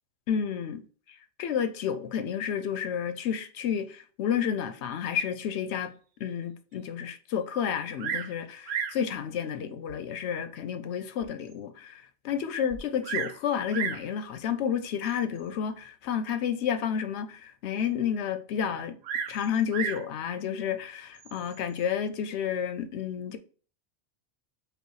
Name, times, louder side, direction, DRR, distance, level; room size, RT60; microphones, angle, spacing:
voice 1, 0.3-0.8 1.4-6.0 6.2-19.0 19.3-23.4, left 8 dB, 80° left, 0.8 m, -31 dB
Bird vocalization bird call bird song, 8.0-8.4 8.7-9.0 9.9-10.0 10.6-10.7 11.2-11.3 11.5-11.6 12.7-13.4 13.7-14.1 15.1-15.4 19.0-20.1 21.2-21.6, right 7 dB, 80° right, 0.9 m, -33 dB
5.0 x 2.3 x 4.6 m
omnidirectional pair, 1.1 m